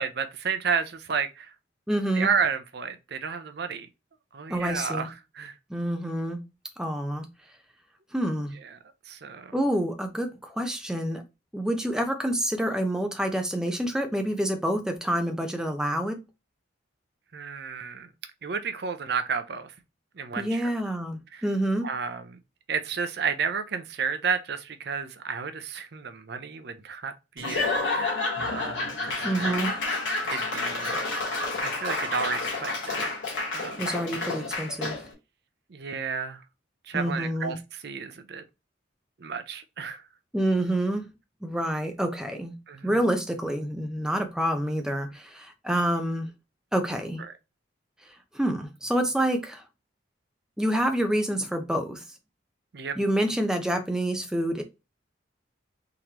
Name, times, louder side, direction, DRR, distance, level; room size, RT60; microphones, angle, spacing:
voice 1, 0.0-1.5 2.2-3.9 4.3-5.1 5.4-5.5 9.1-9.5 17.3-18.1 18.4-19.7 20.2-20.5 21.3-21.4 21.8-22.4 22.7-29.5 30.3-31.0 31.6-33.1 33.5-33.8 35.7-36.4 36.9-37.6 37.8-38.4 39.2-40.0 42.7-43.0 52.7-53.0, right 6 dB, 55° right, 0.5 m, -31 dB
voice 2, 1.9-2.3 4.5-5.1 5.7-6.4 6.8-7.3 8.1-8.6 9.5-11.2 11.5-16.2 20.4-21.9 29.2-29.7 33.8-35.0 36.9-37.6 40.3-41.1 41.4-42.6 42.8-46.3 46.7-47.2 48.0-49.6 50.6-52.0 53.0-54.6, right 1 dB, 5° right, 0.6 m, -27 dB
Laughter / Applause / Crowd, 27.4-35.1, left 3 dB, 75° left, 1.4 m, -30 dB
3.7 x 3.0 x 2.9 m
head